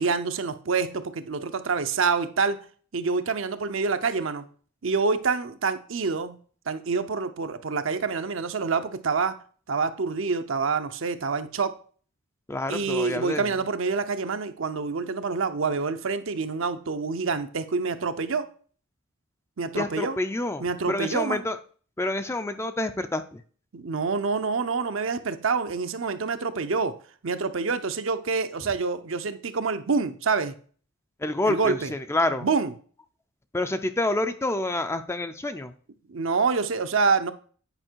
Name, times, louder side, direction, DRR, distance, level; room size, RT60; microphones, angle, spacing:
voice 1, 0.0-2.6 2.9-4.4 4.8-6.4 6.7-9.4 9.7-11.7 12.7-18.5 19.6-20.2 20.6-21.5 23.7-26.9 27.2-30.5 31.4-31.9 32.4-32.7 36.1-37.3, right 4 dB, 65° right, 9 dB, 0.7 m, -27 dB
voice 2, 12.5-13.4 19.7-21.6 22.0-23.4 31.2-32.5 33.5-35.7, left 2 dB, 10° left, 10 dB, 0.4 m, -28 dB
8.8 x 5.4 x 4.5 m, 0.44 s
head